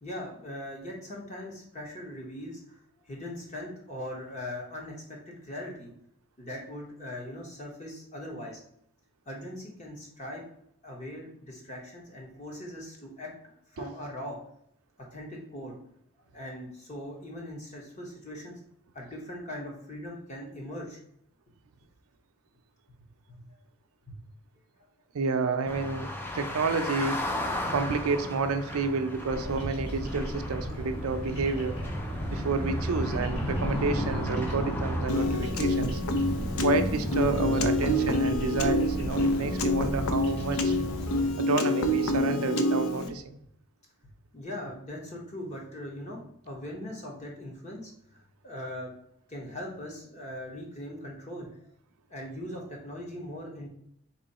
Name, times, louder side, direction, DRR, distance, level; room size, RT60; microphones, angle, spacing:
voice 1, 0.0-2.8 3.0-5.9 6.4-8.6 9.3-10.4 10.8-14.4 15.0-15.7 16.3-18.6 18.9-21.0 23.3-23.6 24.1-24.2 27.8-27.9 30.7-30.8 42.2-42.3 44.3-48.9 49.3-51.5 52.1-53.7, left 1 dB, 30° left, -1 dB, 1.1 m, -40 dB
voice 2, 25.1-26.1 26.3-27.2 27.7-31.8 32.3-36.0 36.6-40.8 41.4-43.4, right 4 dB, 85° right, 8 dB, 0.5 m, -30 dB
sound 1, 25.6-35.1, left 1 dB, 10° left, 0.4 m, -37 dB
Bird vocalization bird call bird song, 29.3-41.3, equal, 50° left, 1.5 m, -33 dB
Piano, 35.1-43.1, left 1 dB, 80° left, 0.5 m, -27 dB
3.8 x 3.0 x 4.1 m, 0.72 s
head